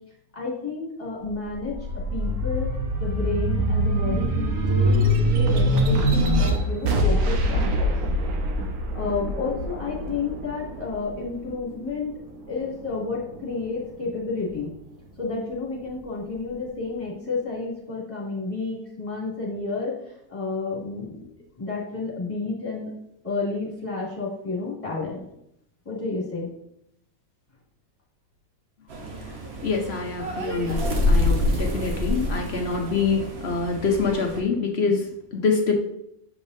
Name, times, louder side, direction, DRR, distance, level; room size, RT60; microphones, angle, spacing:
voice 1, 0.3-1.8 2.1-2.7 3.0-5.0 5.3-7.9 8.9-12.1 12.5-14.7 15.2-21.3 21.6-22.9 23.2-25.2 25.8-26.5, left 3 dB, 20° left, -6 dB, 2.6 m, -31 dB
sound 1, 1.3-12.1 12.6-13.7, equal, 90° right, 1.4 m, -24 dB
sound 2, 28.9-34.4, left 1 dB, 50° right, 1.2 m, -26 dB
voice 2, 29.6-35.7, left 4 dB, 50° left, 2 dB, 0.9 m, -25 dB
7.2 x 5.4 x 2.6 m, 0.77 s
omnidirectional pair, 1.5 m